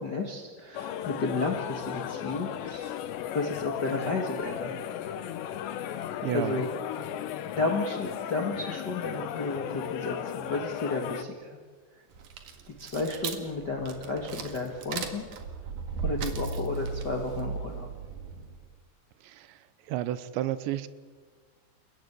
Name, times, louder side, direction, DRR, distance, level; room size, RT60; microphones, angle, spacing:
voice 1, 0.0-2.9 3.3-4.7 6.3-6.7 7.5-11.6 12.7-15.2 16.0-17.9, left 3 dB, 50° left, 2 dB, 1.2 m, -32 dB
sound 1, 0.7-11.2, left 10 dB, 75° left, 3.3 m, -36 dB
voice 2, 6.2-6.6 19.2-19.6 19.9-20.9, right 13 dB, 80° right, 15 dB, 3.1 m, -31 dB
sound 2, 12.1-18.7, right 5 dB, 55° right, 2.8 m, -36 dB
29.5 x 17.0 x 8.3 m, 1.5 s
omnidirectional pair, 5.2 m